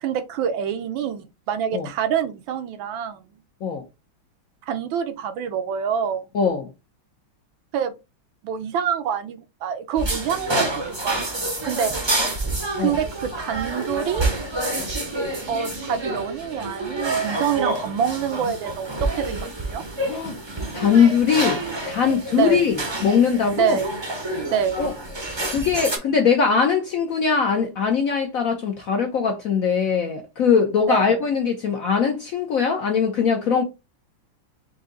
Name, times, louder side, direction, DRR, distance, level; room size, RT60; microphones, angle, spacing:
voice 1, 0.0-3.2 4.7-6.3 7.7-7.9 8.4-11.9 12.8-14.3 15.5-19.8 22.3-22.6 23.5-23.9 24.5-24.8 30.9-31.2, right 8 dB, 75° right, 1.4 m, -26 dB
voice 2, 6.3-6.7 12.8-13.0 20.1-20.4 20.7-23.8 24.8-24.9 25.5-33.6, left 6 dB, 65° left, 0.8 m, -21 dB
sound 1, 10.0-26.0, right 2 dB, 30° right, 0.4 m, -28 dB
4.8 x 2.7 x 3.8 m
omnidirectional pair, 2.2 m